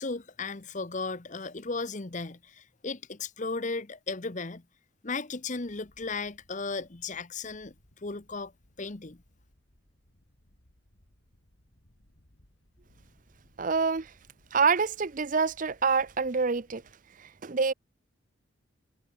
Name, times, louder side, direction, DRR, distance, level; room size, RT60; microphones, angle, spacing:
voice 1, 0.0-4.6 5.0-7.7 8.0-8.5 8.8-9.2, left 3 dB, 35° left, 1.0 m, -35 dB
Wind, 5.6-16.9, left 1 dB, 70° left, 3.6 m, -64 dB
voice 2, 13.6-14.1 14.5-16.8 17.2-17.7, right 5 dB, 40° right, 0.6 m, -26 dB
head